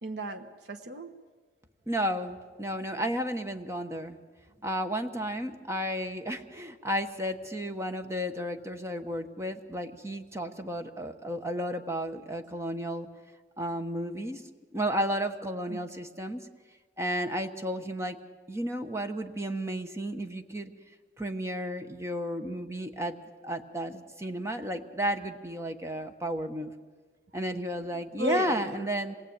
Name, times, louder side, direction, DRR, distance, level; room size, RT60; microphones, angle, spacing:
voice 1, 0.0-1.1 15.7-15.8 27.9-28.9, equal, 65° right, 4 dB, 1.4 m, -35 dB
voice 2, 1.9-4.2 4.6-13.1 13.6-14.4 14.7-16.4 17.0-18.2 18.5-20.7 21.2-23.1 23.4-26.7 27.3-29.1, equal, 15° right, 6 dB, 1.2 m, -33 dB
26.5 x 19.5 x 8.9 m, 1.5 s
head